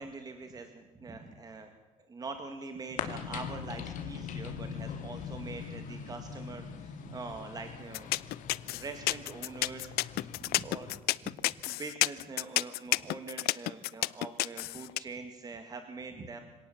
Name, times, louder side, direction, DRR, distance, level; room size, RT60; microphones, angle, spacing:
voice 1, 0.0-1.7 2.1-8.1 8.7-11.0 11.6-16.4, right 3 dB, 20° right, 6 dB, 2.0 m, -44 dB
sound 1, 3.0-11.0, left 7 dB, 50° left, 2.5 m, -42 dB
sound 2, 7.9-15.0, left 18 dB, 70° left, 0.6 m, -30 dB
26.0 x 18.0 x 7.2 m, 1.3 s
cardioid pair, 150°, 17 cm